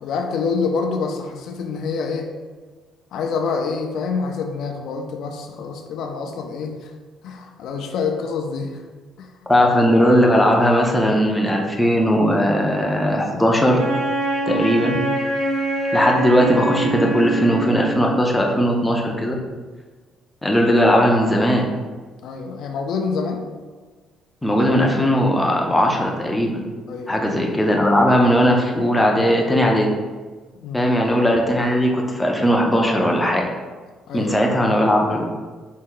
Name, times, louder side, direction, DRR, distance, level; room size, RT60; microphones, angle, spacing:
voice 1, 0.0-2.3 3.1-6.9 7.2-8.8 9.2-9.3 22.2-23.5 26.9-27.3 30.6-30.8 34.1-34.3, left 5 dB, 60° left, 3 dB, 0.4 m, -26 dB
voice 2, 9.5-13.8 14.5-15.0 15.9-19.4 20.4-21.6 24.4-26.6 27.1-29.9 30.7-33.4 34.1-35.2, equal, 5° left, 0 dB, 0.5 m, -18 dB
Wind instrument woodwind instrument, 13.8-18.1, right 2 dB, 50° right, 1.3 m, -24 dB
4.2 x 2.6 x 3.7 m, 1.4 s
cardioid pair, 170°, 0 cm